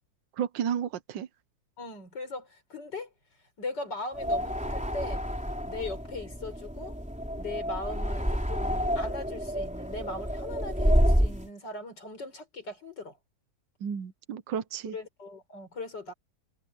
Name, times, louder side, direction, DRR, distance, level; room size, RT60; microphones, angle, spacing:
voice 1, 0.4-1.3 13.8-15.0, right 8 dB, 80° right, 1.7 m, -32 dB
voice 2, 1.8-3.1 3.6-5.2 5.7-6.9 7.4-13.2 14.9-16.1, left 2 dB, 70° left, 5.5 m, -39 dB
sound 1, 4.1-11.5, equal, 5° right, 3.5 m, -29 dB
omnidirectional pair, 2.0 m